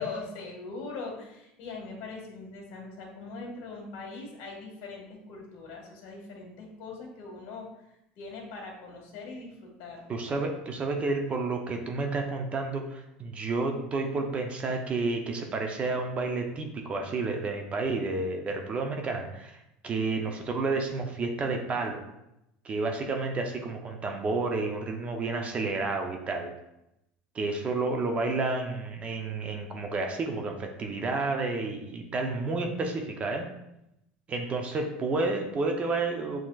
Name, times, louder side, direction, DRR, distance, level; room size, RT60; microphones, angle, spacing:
voice 1, 0.0-7.8 8.2-10.0, left 4 dB, 65° left, 0 dB, 1.5 m, -41 dB
voice 2, 10.1-19.6 19.8-22.0 22.6-26.5 27.3-33.5 34.3-36.4, right 3 dB, 30° right, 3 dB, 0.7 m, -30 dB
7.4 x 3.0 x 2.3 m, 0.85 s
supercardioid pair, 120°, 4 cm